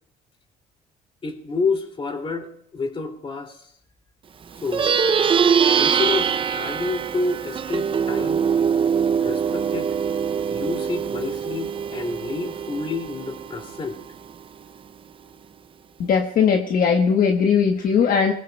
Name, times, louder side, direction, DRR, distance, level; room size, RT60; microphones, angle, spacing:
voice 1, 1.2-3.7 4.6-5.1 5.8-8.5 9.2-10.0 10.5-14.0, left 3 dB, 30° left, 3 dB, 2.5 m, -29 dB
Plucked string instrument, 4.6-14.3, right 7 dB, 30° right, 0.5 m, -23 dB
voice 2, 16.0-18.3, left 6 dB, 55° left, 2 dB, 1.2 m, -19 dB
26.0 x 20.5 x 2.2 m, 0.70 s
cardioid pair, 110°, 17 cm